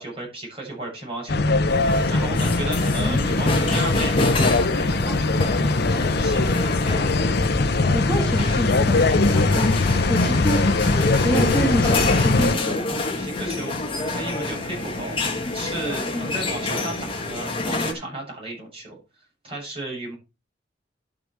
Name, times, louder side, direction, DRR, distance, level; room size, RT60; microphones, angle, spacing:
voice 1, 0.0-1.5 2.1-6.8 13.2-13.8 14.1-15.2 15.5-19.0 19.4-20.1, right 2 dB, 30° right, -3 dB, 7.5 m, -34 dB
sound 1, 1.3-12.6, left 3 dB, 60° left, 0.8 m, -21 dB
sound 2, 1.7-17.9, left 2 dB, 30° left, 1.8 m, -28 dB
voice 2, 7.9-9.7 10.1-10.7 11.2-12.8 16.1-16.3, equal, 5° left, -3 dB, 2.6 m, -26 dB
12.0 x 5.9 x 4.7 m, 0.27 s
head